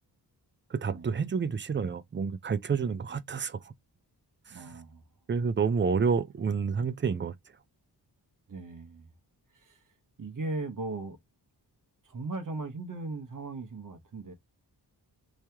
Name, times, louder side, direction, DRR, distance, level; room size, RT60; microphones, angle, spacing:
voice 1, 0.7-3.7 4.5-4.8 5.3-7.3, right 5 dB, 30° right, 0.4 m, -29 dB
voice 2, 4.5-5.0 8.5-9.1 9.5-9.8 10.2-11.2 12.0-14.3, right 3 dB, 50° right, 1.0 m, -38 dB
3.1 x 2.8 x 3.4 m
wide cardioid pair, 110°, 41 cm